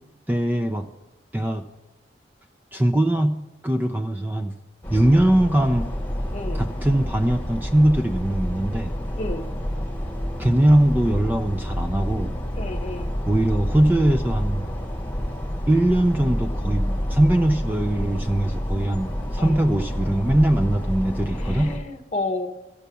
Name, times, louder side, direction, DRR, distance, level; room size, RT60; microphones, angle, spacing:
voice 1, 0.3-0.9 1.3-1.6 2.7-3.4 3.6-4.5 4.9-5.9 6.5-9.0 10.4-12.4 13.2-14.7 15.7-21.7, right 1 dB, 10° right, 7 dB, 0.4 m, -21 dB
sound 1, 4.8-21.8, equal, 10° left, 2.0 m, -28 dB
voice 2, 12.5-13.1 19.4-19.6 21.3-22.5, left 2 dB, 40° left, 6 dB, 0.9 m, -31 dB
14.0 x 7.2 x 6.8 m, 0.97 s
head